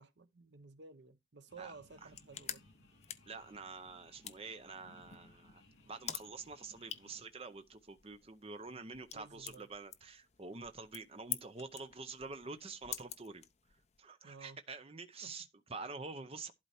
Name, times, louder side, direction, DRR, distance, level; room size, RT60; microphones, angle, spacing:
voice 1, 0.0-2.6 9.1-9.7 14.2-14.6 15.2-15.3, right 4 dB, 60° right, 0.8 m, -54 dB
sound 1, 1.5-7.2, left 2 dB, 75° left, 2.8 m, -63 dB
sound 2, 1.9-14.0, left 11 dB, 35° left, 0.5 m, -49 dB
voice 2, 3.3-13.4 14.0-16.5, right 4 dB, 30° right, 0.6 m, -47 dB
11.5 x 4.3 x 4.3 m
head